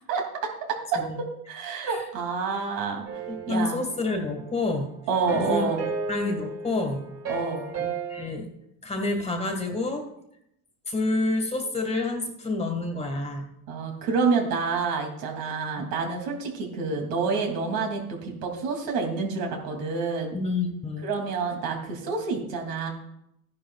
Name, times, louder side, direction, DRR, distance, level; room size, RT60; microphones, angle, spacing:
voice 1, 0.1-3.1 3.5-3.8 5.1-5.8 7.3-7.6 13.7-20.3 21.0-22.9, right 4 dB, 75° right, 2 dB, 2.8 m, -28 dB
sound 1, 3.1-4.6 5.1-8.2, right 4 dB, 40° right, 3.3 m, -34 dB
voice 2, 3.3-4.9 5.3-5.7 6.1-7.1 7.8-8.5 8.8-10.1 10.9-13.5 15.8-15.9 20.3-21.1, left 2 dB, 15° left, 3 dB, 1.8 m, -28 dB
14.0 x 10.5 x 2.4 m, 0.78 s
supercardioid pair, 110°, 39 cm